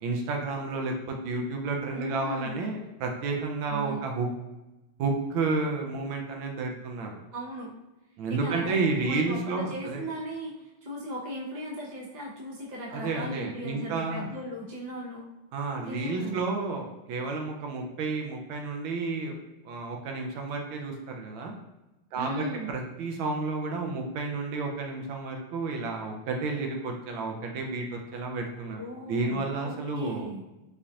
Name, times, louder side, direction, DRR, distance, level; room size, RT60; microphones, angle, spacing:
voice 1, 0.0-4.3 5.0-7.2 8.2-10.0 12.9-14.3 15.5-19.3 19.6-21.5 22.1-28.8 29.1-30.3, right 3 dB, 75° right, 2 dB, 1.4 m, -31 dB
voice 2, 1.9-2.5 3.7-4.1 7.3-7.7 8.3-10.5 10.8-15.2 15.8-16.4 22.1-22.7 28.8-30.4, equal, 50° right, -5 dB, 0.5 m, -37 dB
5.0 x 2.8 x 2.4 m, 1.0 s
omnidirectional pair, 2.3 m